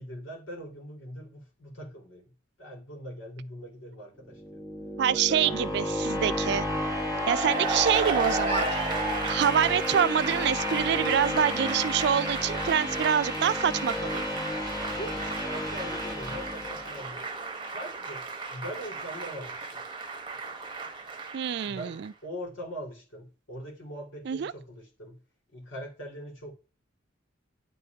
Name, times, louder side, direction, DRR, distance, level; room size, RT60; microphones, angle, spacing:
voice 1, 0.0-2.3 2.6-4.6 5.1-5.6 14.9-17.3 17.7-18.3 18.5-19.8 21.6-25.2 25.5-26.5, equal, 75° left, 2.8 m, -41 dB
sound 1, 4.3-17.3, left 1 dB, 20° left, 0.9 m, -32 dB
voice 2, 5.0-6.7 7.3-8.9 9.2-14.3 21.3-22.1 24.3-24.5, right 8 dB, 55° right, 0.3 m, -26 dB
Cheering / Applause, 7.1-22.1, right 3 dB, 25° right, 1.0 m, -34 dB
9.8 x 3.7 x 3.4 m
head